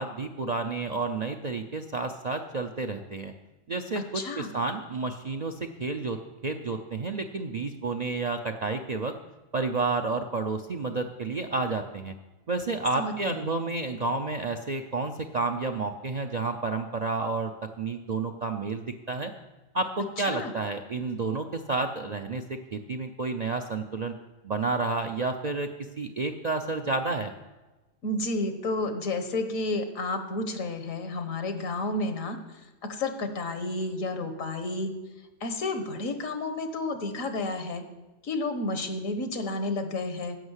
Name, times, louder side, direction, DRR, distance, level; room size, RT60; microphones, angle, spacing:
voice 1, 0.0-3.3 3.7-9.1 9.5-12.1 12.5-17.5 17.8-19.3 19.7-24.1 24.4-25.7 26.0-27.3, right 3 dB, 50° right, 6 dB, 0.5 m, -30 dB
voice 2, 4.1-4.5 12.9-13.4 20.3-20.5 28.0-32.4 32.8-34.9 35.4-37.8 38.2-40.4, left 2 dB, 80° left, 7 dB, 1.6 m, -31 dB
11.0 x 6.3 x 8.1 m, 1.1 s
omnidirectional pair, 1.4 m